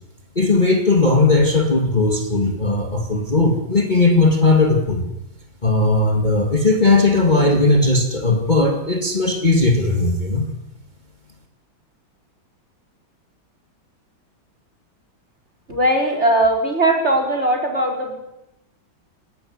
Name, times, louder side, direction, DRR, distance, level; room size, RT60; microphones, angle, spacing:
voice 1, 0.4-5.0 5.6-10.5, left 2 dB, 20° left, 2 dB, 2.5 m, -17 dB
voice 2, 15.7-18.2, right 1 dB, 30° right, 1 dB, 5.0 m, -19 dB
29.5 x 12.5 x 9.8 m, 0.90 s
omnidirectional pair, 2.2 m